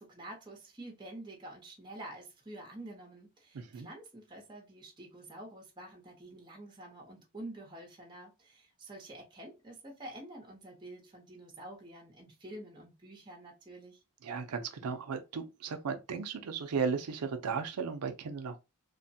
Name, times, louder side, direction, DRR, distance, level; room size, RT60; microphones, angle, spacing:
voice 1, 0.0-14.0, right 1 dB, 20° right, 0.8 m, -48 dB
voice 2, 3.5-3.9 14.2-18.6, right 5 dB, 85° right, 0.5 m, -35 dB
3.1 x 2.1 x 2.7 m
head